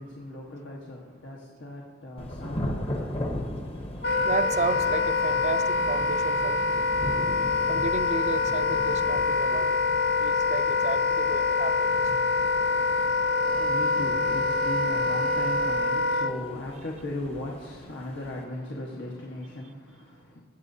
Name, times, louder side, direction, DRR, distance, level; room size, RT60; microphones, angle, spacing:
voice 1, 0.0-3.3 13.3-20.4, left 1 dB, 80° left, 1.3 m, -37 dB
Thunder / Rain, 2.2-18.4, left 1 dB, 35° left, 0.9 m, -38 dB
voice 2, 3.8-6.8 7.7-9.8 10.2-12.3, right 4 dB, 40° right, 0.4 m, -33 dB
Wind instrument woodwind instrument, 4.0-16.3, left 3 dB, 60° left, 0.7 m, -25 dB
17.0 x 7.5 x 2.7 m
head